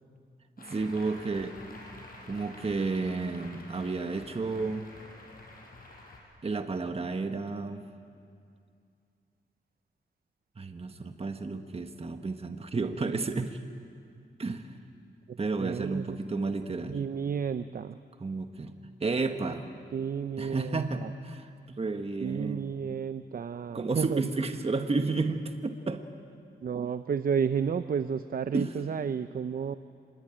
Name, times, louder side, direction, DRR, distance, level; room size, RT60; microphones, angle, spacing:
Applause, 0.6-6.2, left 2 dB, 55° left, 5.8 m, -49 dB
voice 1, 0.6-1.6 2.3-4.9 6.4-7.8 10.6-13.6 14.4-14.7 15.4-17.0 18.2-18.7 19.0-19.7 20.4-22.8 23.7-26.1 28.5-28.7, right 3 dB, 35° right, 6 dB, 1.3 m, -32 dB
voice 2, 15.3-16.2 16.9-18.0 19.9-21.1 22.2-24.2 26.6-29.8, right 7 dB, 55° right, 12 dB, 0.6 m, -32 dB
25.0 x 21.5 x 8.9 m, 2.3 s
cardioid pair, 85°, 18 cm